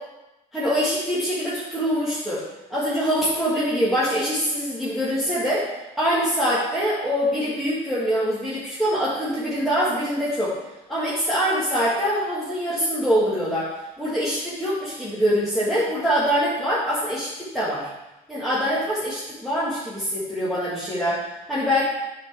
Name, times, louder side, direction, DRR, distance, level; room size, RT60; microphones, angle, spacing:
voice 1, 0.5-2.4 2.7-5.7 6.0-10.5 10.9-17.9 18.3-21.8, equal, ahead, -10 dB, 1.8 m, -24 dB
10.5 x 4.3 x 3.5 m, 0.99 s
cardioid pair, 110°, 17 cm